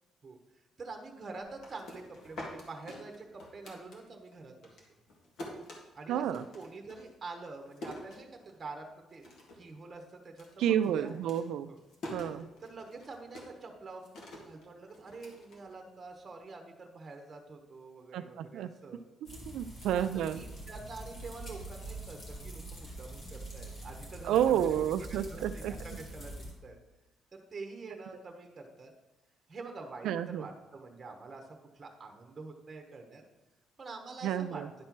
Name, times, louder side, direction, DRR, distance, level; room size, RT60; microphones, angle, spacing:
voice 1, 0.2-4.8 5.9-6.3 6.5-9.3 9.5-11.3 11.7-11.8 12.6-14.0 14.5-19.0 19.9-20.1 20.3-26.3 26.6-26.8 27.3-28.9 29.5-31.5 31.7-33.2 33.8-34.6, right 3 dB, 20° right, 2 dB, 1.1 m, -46 dB
sound 1, 1.4-4.3 4.6-8.8 9.1-9.7 10.0-16.2, left 1 dB, 60° left, 1.8 m, -47 dB
voice 2, 6.1-6.4 10.6-11.7 12.1-12.5 18.1-18.7 19.5-20.4 24.2-25.7 30.0-30.4 34.2-34.7, right 10 dB, 80° right, 10 dB, 0.4 m, -30 dB
sound 2, 19.3-26.5, right 2 dB, 40° left, 2.2 m, -44 dB
10.5 x 4.4 x 6.0 m, 1.0 s
cardioid pair, 165°, 0 cm